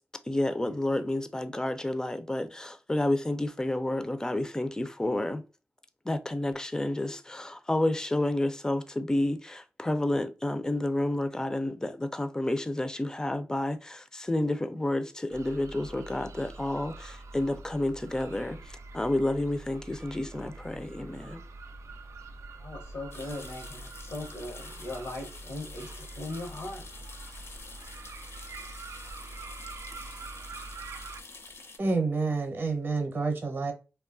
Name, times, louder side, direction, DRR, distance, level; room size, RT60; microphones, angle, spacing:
voice 1, 0.2-5.4 6.0-21.4, left 1 dB, 15° left, 0.4 m, -30 dB
sound 1, 15.3-31.2, right 3 dB, 80° right, 0.4 m, -45 dB
voice 2, 22.6-26.9, left 2 dB, 85° left, 0.9 m, -39 dB
sound 2, 23.1-31.8, left 3 dB, 60° left, 0.6 m, -48 dB
voice 3, 31.8-33.7, right 3 dB, 40° right, 0.7 m, -28 dB
3.0 x 2.3 x 2.4 m
wide cardioid pair, 150°, 5 cm